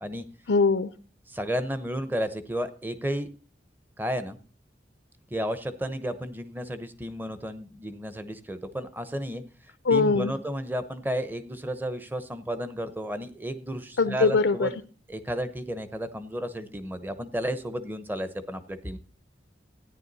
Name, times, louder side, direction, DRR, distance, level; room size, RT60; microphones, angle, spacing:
voice 1, 0.5-0.9 9.9-10.3 14.0-14.7, left 4 dB, 90° left, 12 dB, 0.6 m, -22 dB
voice 2, 1.3-3.3 4.0-4.4 5.3-9.4 9.9-14.7 15.1-19.0, equal, 10° right, 11 dB, 0.8 m, -32 dB
14.0 x 9.9 x 4.1 m, 0.37 s
head